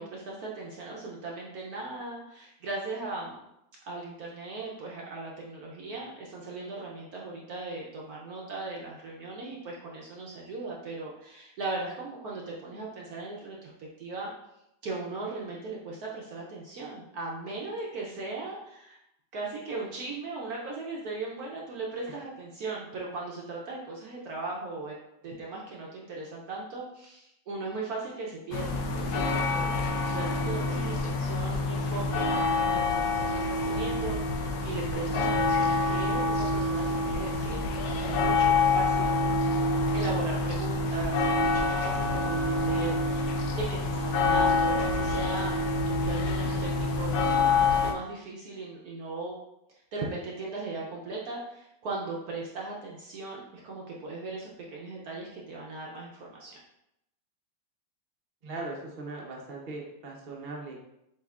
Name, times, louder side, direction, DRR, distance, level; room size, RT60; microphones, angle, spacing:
voice 1, 0.0-3.4 3.9-14.3 14.8-19.0 19.3-24.9 25.2-29.7 30.1-37.6 38.0-39.2 39.9-45.5 45.8-49.4 49.9-56.6, right 3 dB, 65° right, -3 dB, 1.0 m, -38 dB
sound 1, 28.5-47.9, left 3 dB, 80° left, 1.4 m, -27 dB
voice 2, 58.4-60.8, right 2 dB, 45° right, -2 dB, 0.6 m, -39 dB
7.4 x 2.8 x 2.4 m, 0.82 s
omnidirectional pair, 2.1 m